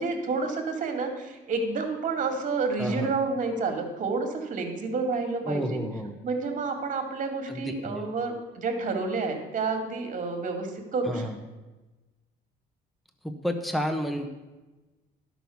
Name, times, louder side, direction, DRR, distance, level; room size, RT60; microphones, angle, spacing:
voice 1, 0.0-5.8 6.2-11.2, right 4 dB, 50° right, 4 dB, 2.1 m, -29 dB
voice 2, 2.8-3.1 5.5-6.2 7.5-8.0 11.1-11.4 13.2-14.3, equal, ahead, 5 dB, 1.1 m, -30 dB
11.5 x 6.2 x 7.0 m, 1.1 s
cardioid pair, 110°, 17 cm